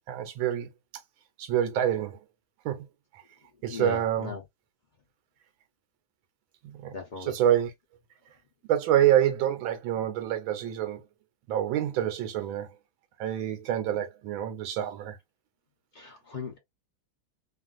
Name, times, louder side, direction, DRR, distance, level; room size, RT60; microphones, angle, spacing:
voice 1, 0.1-0.7 1.4-2.2 2.6-2.9 3.6-4.3 6.6-6.9 7.2-7.7 8.7-11.0 11.5-12.7 13.2-15.2, right 11 dB, 85° right, 1.5 m, -27 dB
voice 2, 3.7-4.4 6.9-7.3 15.9-16.6, left 5 dB, 75° left, 0.4 m, -37 dB
3.2 x 2.5 x 2.4 m
omnidirectional pair, 2.1 m